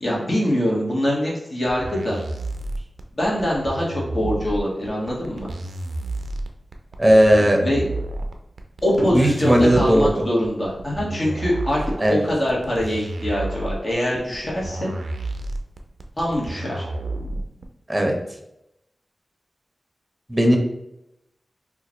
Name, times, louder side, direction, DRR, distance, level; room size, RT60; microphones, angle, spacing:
voice 1, 0.0-2.2 3.1-5.5 7.6-7.8 8.8-11.8 12.1-14.9 16.2-16.9, equal, 45° left, -4 dB, 1.4 m, -23 dB
sound 1, 1.7-17.6, right 2 dB, 90° right, 0.3 m, -31 dB
voice 2, 7.0-7.6 9.1-10.2 12.0-12.2 17.9-18.1 20.3-20.6, equal, 15° right, 2 dB, 0.8 m, -16 dB
2.9 x 2.5 x 3.9 m, 0.85 s
cardioid pair, 50°, 0 cm